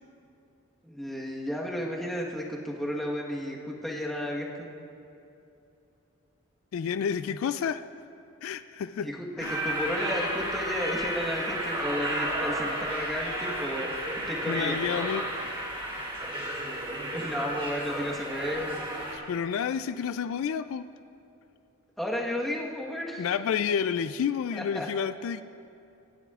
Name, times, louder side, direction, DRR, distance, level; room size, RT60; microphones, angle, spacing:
voice 1, 0.8-4.5 9.0-13.9 14.3-14.8 17.1-18.8 22.0-23.3 24.5-24.9, equal, ahead, -3 dB, 1.2 m, -33 dB
voice 2, 6.7-7.8 8.4-9.1 9.4-9.6 14.5-15.2 19.1-20.9 23.2-25.4, left 7 dB, 65° left, 12 dB, 0.3 m, -30 dB
sound 1, 9.4-19.2, right 1 dB, 25° right, 2.5 m, -32 dB
25.0 x 10.0 x 2.4 m, 2.7 s
head